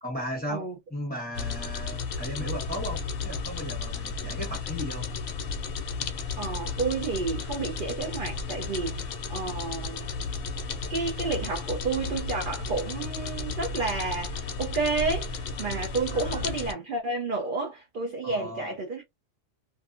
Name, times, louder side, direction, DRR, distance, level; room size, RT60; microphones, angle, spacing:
voice 1, 0.0-5.0 16.1-16.5 18.2-18.7, equal, 10° left, 0.9 m, -36 dB
sound 1, 1.3-16.7, left 4 dB, 60° left, 0.6 m, -33 dB
voice 2, 6.4-10.1 10.9-19.0, right 3 dB, 55° right, 0.6 m, -31 dB
2.5 x 2.3 x 2.4 m
omnidirectional pair, 1.4 m